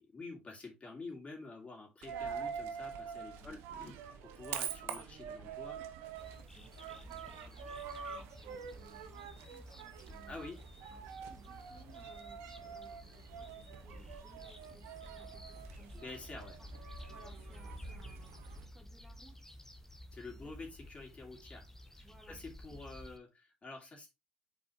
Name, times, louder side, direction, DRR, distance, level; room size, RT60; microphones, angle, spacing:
voice 1, 0.0-3.9 4.2-5.8 10.3-10.6 15.9-16.5 20.1-21.6 22.0-24.1, left 3 dB, 30° left, 2.9 m, -48 dB
Coin (dropping), 2.0-18.7, right 7 dB, 70° right, 0.9 m, -46 dB
sound 1, 6.2-23.2, left 1 dB, 10° left, 1.1 m, -52 dB
voice 2, 6.5-10.4 10.9-16.2 16.6-16.7 17.1-19.6 20.3-20.6 22.0-22.4, right 2 dB, 5° right, 2.6 m, -62 dB
7.1 x 4.7 x 3.1 m
hypercardioid pair, 60°, 4 cm